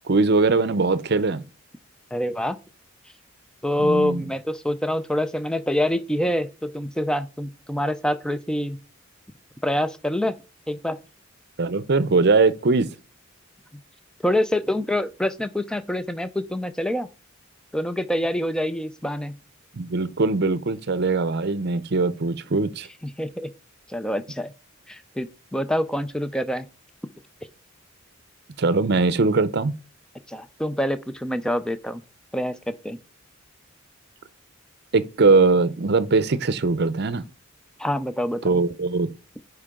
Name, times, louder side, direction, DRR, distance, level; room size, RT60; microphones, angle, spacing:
voice 1, 0.1-1.4 3.8-4.3 11.6-12.9 19.7-22.9 28.6-29.7 34.9-37.2 38.4-39.1, right 3 dB, 55° right, 0.6 m, -21 dB
voice 2, 2.1-2.6 3.6-8.8 9.6-10.3 10.7-11.0 14.2-17.1 17.7-19.4 23.0-23.5 23.9-24.5 24.9-26.7 30.3-32.0 32.3-33.0 37.8-38.6, left 1 dB, 5° left, 0.5 m, -26 dB
9.8 x 4.7 x 3.7 m
head